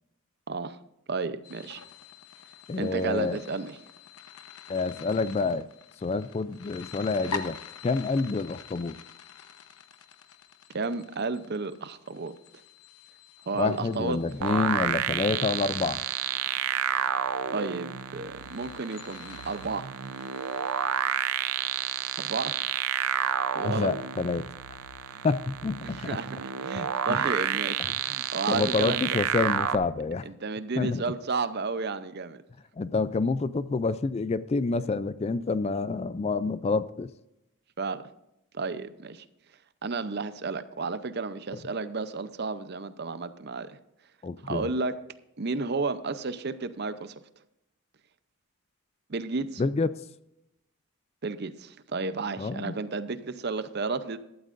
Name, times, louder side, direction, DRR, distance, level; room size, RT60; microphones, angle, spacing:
voice 1, 0.5-0.8 1.1-1.8 2.8-3.8 10.7-12.3 13.5-14.2 17.5-19.9 22.2-22.6 23.5-23.9 25.1-25.3 25.8-29.0 30.3-32.4 37.8-38.0 38.5-39.2 39.8-43.8 44.4-45.0 45.4-47.1 49.1-49.6 51.2-54.2, right 4 dB, 50° right, 13 dB, 0.6 m, -32 dB
sound 1, 1.4-21.2, left 5 dB, 90° left, 1.0 m, -46 dB
voice 2, 2.7-3.4 4.7-5.7 6.0-7.6 7.8-8.9 13.5-16.0 23.6-24.5 25.2-26.2 27.1-27.2 27.8-27.9 28.5-30.3 30.8-31.0 32.8-37.1 41.5-41.6 44.2-44.7 49.6-50.0 52.4-52.7, left 4 dB, 30° left, 15 dB, 0.3 m, -28 dB
sound 2, 14.4-29.8, right 9 dB, 85° right, 0.6 m, -30 dB
15.0 x 12.5 x 2.6 m, 0.86 s
head